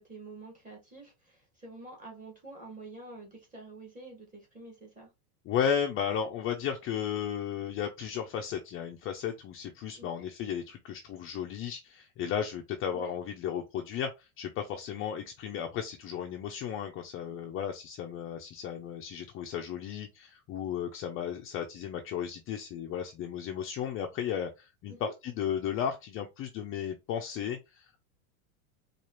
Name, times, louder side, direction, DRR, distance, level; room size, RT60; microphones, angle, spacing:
voice 1, 0.0-5.1 10.0-10.3 12.9-13.1 24.9-25.1, right 2 dB, 15° right, 1.6 m, -48 dB
voice 2, 5.5-28.0, left 8 dB, 30° left, 0.4 m, -34 dB
4.6 x 2.4 x 2.9 m
supercardioid pair, 125°, 45 cm